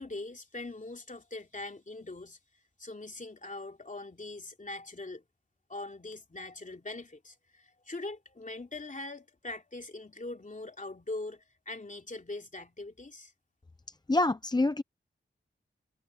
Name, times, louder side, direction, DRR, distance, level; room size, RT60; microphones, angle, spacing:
voice 1, 0.0-2.4 2.8-5.2 5.7-13.3, left 2 dB, 40° left, 2.9 m, -42 dB
voice 2, 14.1-14.8, left 2 dB, 20° left, 0.6 m, -26 dB
wide cardioid pair, 60°, 21 cm